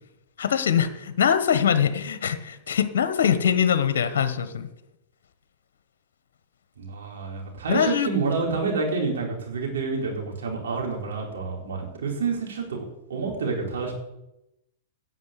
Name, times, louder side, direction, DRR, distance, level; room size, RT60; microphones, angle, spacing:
voice 1, 0.4-4.7 7.7-8.1, left 8 dB, 70° left, 11 dB, 1.2 m, -23 dB
voice 2, 6.8-12.8 13.1-13.9, right 4 dB, 75° right, -2 dB, 4.3 m, -28 dB
9.4 x 7.4 x 8.3 m, 0.88 s
hypercardioid pair, 110°, 0 cm